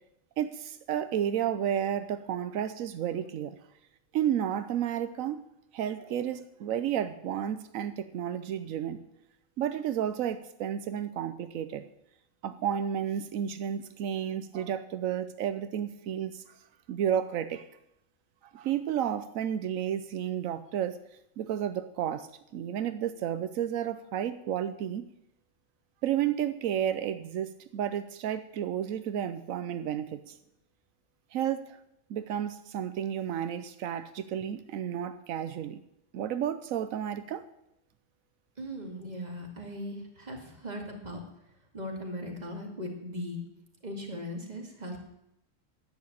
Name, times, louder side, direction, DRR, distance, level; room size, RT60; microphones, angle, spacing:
voice 1, 0.4-3.6 4.1-5.4 5.7-9.0 9.6-11.9 12.4-16.6 16.9-17.6 18.5-21.0 21.4-25.1 26.0-30.4 31.3-31.8 32.1-35.8 36.1-37.5, right 10 dB, 85° right, 12 dB, 1.1 m, -32 dB
voice 2, 38.6-41.2 41.7-43.4 43.8-45.0, left 1 dB, 30° right, 2 dB, 2.3 m, -38 dB
10.5 x 8.5 x 8.6 m, 0.81 s
omnidirectional pair, 1.4 m